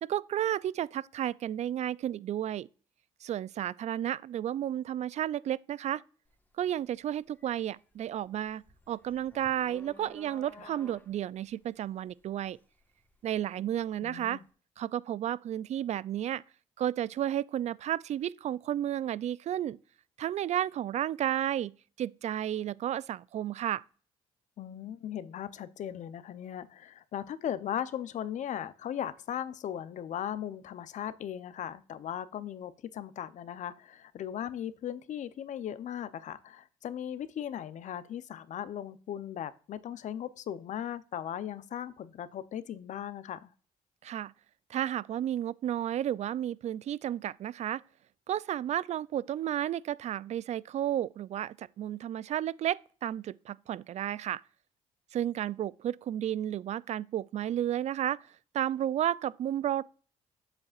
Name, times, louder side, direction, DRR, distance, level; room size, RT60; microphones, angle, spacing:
voice 1, 0.0-2.7 3.2-6.0 6.6-12.6 13.2-14.4 14.8-16.4 16.8-19.8 20.2-21.7 22.0-23.8 44.0-44.3 44.7-47.8 48.3-54.4 55.1-58.3 58.5-59.8, right 11 dB, 55° right, 0.4 m, -32 dB
sound 1, 6.3-6.5 6.9-13.9, equal, 15° left, 1.4 m, -54 dB
voice 2, 14.0-14.4 24.6-43.5, left 10 dB, 60° left, 0.7 m, -38 dB
7.7 x 7.1 x 2.5 m
supercardioid pair, 65°, 14 cm